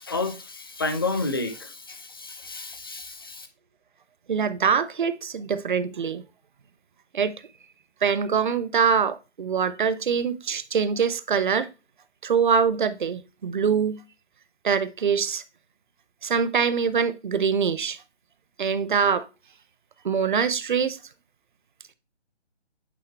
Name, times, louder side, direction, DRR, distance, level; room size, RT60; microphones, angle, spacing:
voice 1, 0.0-3.5, left 3 dB, 20° left, 0.4 m, -30 dB
voice 2, 4.3-6.2 7.1-7.3 8.0-11.7 12.2-14.0 14.6-15.4 16.2-18.0 18.6-19.3 20.0-21.0, right 6 dB, 45° right, 0.5 m, -24 dB
8.4 x 3.5 x 3.2 m
figure-of-eight pair, 150°, 35 cm